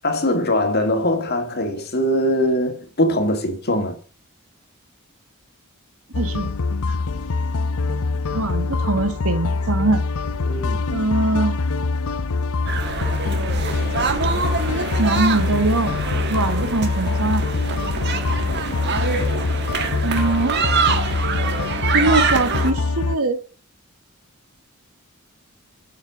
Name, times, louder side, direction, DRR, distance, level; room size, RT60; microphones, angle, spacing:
voice 1, 0.0-4.0 10.4-10.8, left 1 dB, 45° left, 2.0 m, -21 dB
sound 1, 6.1-23.2, left 3 dB, 85° left, 0.6 m, -24 dB
voice 2, 6.1-6.5 8.3-10.0 10.9-11.6 15.0-16.0 16.3-17.5 20.0-20.6 21.9-23.4, right 2 dB, 80° right, 1.6 m, -22 dB
sound 2, 12.7-22.7, right 5 dB, 50° right, 1.4 m, -25 dB
7.6 x 6.8 x 6.6 m
head